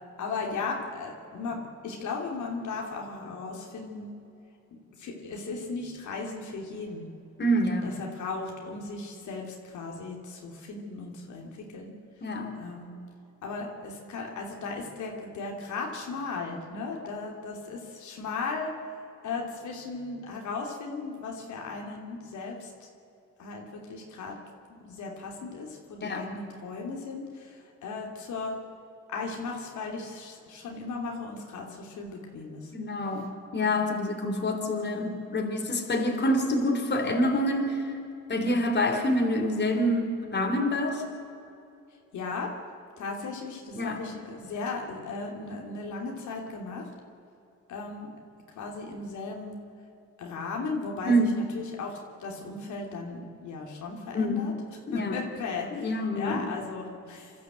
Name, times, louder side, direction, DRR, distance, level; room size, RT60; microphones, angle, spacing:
voice 1, 0.2-4.1 4.7-7.1 7.8-11.9 12.6-12.9 13.4-18.7 19.2-22.9 23.4-24.4 24.7-28.6 29.1-32.7 42.1-42.5 43.0-46.9 47.7-48.1 48.6-49.6 50.2-57.4, left 4 dB, 75° left, 0 dB, 3.0 m, -36 dB
voice 2, 7.4-7.9 12.2-12.6 26.0-26.3 32.7-37.9 38.3-41.0 43.7-44.0 51.0-51.4 54.1-54.5 54.9-55.2 55.7-56.5, equal, 35° left, 4 dB, 3.2 m, -27 dB
26.0 x 13.0 x 8.0 m, 2.7 s
cardioid pair, 90°, 30 cm